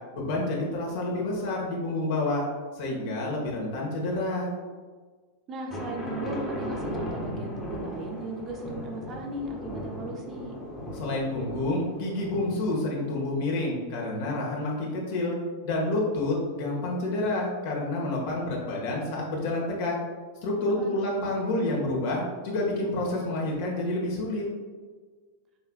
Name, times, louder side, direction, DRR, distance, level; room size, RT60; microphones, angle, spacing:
voice 1, 0.1-2.5 2.8-4.5 10.9-15.3 15.6-19.9 20.4-24.4, left 2 dB, 60° left, -2 dB, 1.2 m, -29 dB
voice 2, 5.5-10.6 20.7-21.1, right 2 dB, 35° right, 1 dB, 0.7 m, -37 dB
sound 1, 5.7-12.9, equal, 15° left, 1.1 m, -36 dB
5.5 x 3.3 x 2.2 m, 1.4 s
hypercardioid pair, 95°, 0 cm